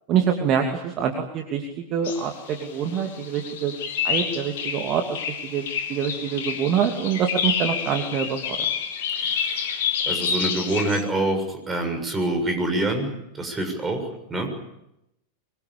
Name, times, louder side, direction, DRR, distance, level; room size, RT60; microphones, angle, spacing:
voice 1, 0.1-3.7 4.0-5.2 5.5-8.6, right 7 dB, 35° right, 4 dB, 2.8 m, -25 dB
sound 1, 2.0-11.0, left 7 dB, 55° left, 3.3 m, -28 dB
voice 2, 9.2-9.8 10.1-13.1 13.3-14.5, right 2 dB, 15° right, 5 dB, 7.2 m, -26 dB
25.0 x 23.0 x 8.6 m, 0.85 s
figure-of-eight pair, 90°, 0 cm